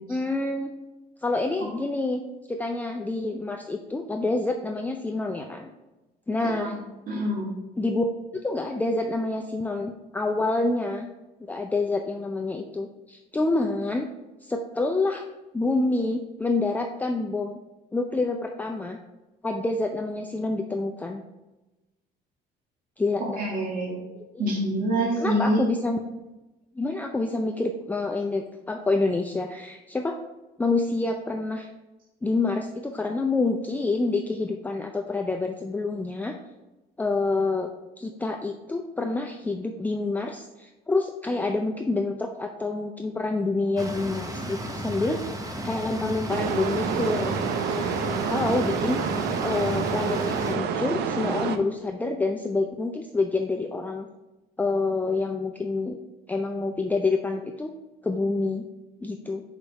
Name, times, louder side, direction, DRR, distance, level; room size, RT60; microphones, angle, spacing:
voice 1, 0.1-0.7 1.2-2.2 2.5-5.7 6.3-6.7 7.8-8.1 8.4-11.1 11.4-14.1 14.4-15.2 15.5-17.6 17.9-19.0 19.4-21.2 23.0-23.4 24.3-24.4 25.2-26.0 26.7-30.2 30.6-31.7 32.2-36.3 37.0-37.7 38.0-47.3 47.7-49.0 49.4-54.1 54.6-56.0 56.3-57.7 58.0-58.6 59.0-59.4, left 3 dB, 10° left, 3 dB, 0.4 m, -27 dB
voice 2, 7.1-7.5 23.4-24.0 24.4-25.6, right 1 dB, 55° right, -4 dB, 1.8 m, -26 dB
sound 1, 43.8-50.5, right 1 dB, 20° right, 0.8 m, -34 dB
sound 2, 46.3-51.6, right 6 dB, 75° right, 0.6 m, -28 dB
5.1 x 4.7 x 4.0 m, 1.1 s
cardioid pair, 110°, 17 cm